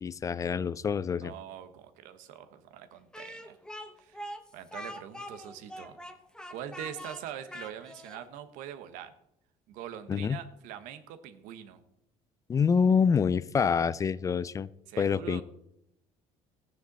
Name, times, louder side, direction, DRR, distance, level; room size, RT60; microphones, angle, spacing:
voice 1, 0.0-1.3 10.1-10.4 12.5-14.7 15.0-15.4, left 6 dB, 25° left, 18 dB, 0.3 m, -26 dB
voice 2, 1.2-3.6 4.0-6.0 6.5-9.1 9.7-11.8 14.9-15.4, right 10 dB, 85° right, 11 dB, 1.2 m, -43 dB
Speech, 3.1-8.2, equal, 5° left, 1.0 m, -43 dB
14.5 x 9.3 x 4.1 m, 0.78 s
cardioid pair, 135°, 13 cm